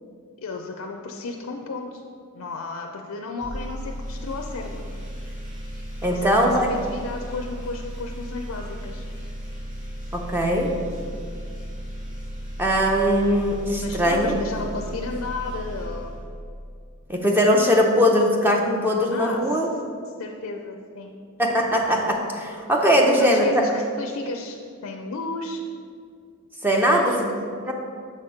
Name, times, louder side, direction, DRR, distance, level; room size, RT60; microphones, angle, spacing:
voice 1, 0.4-2.0 2.3-4.9 6.0-9.0 13.8-16.1 19.1-19.7 20.1-21.1 22.9-25.6 26.7-27.3 27.6-27.7, left 3 dB, 75° left, 2 dB, 0.5 m, -33 dB
sound 1, 3.4-16.8, equal, 35° right, 1.4 m, -35 dB
voice 2, 6.0-6.7 10.1-10.7 12.6-14.3 17.1-19.7 21.4-23.7 26.6-27.7, equal, 10° right, 1 dB, 0.5 m, -20 dB
6.7 x 4.4 x 5.0 m, 2.2 s
head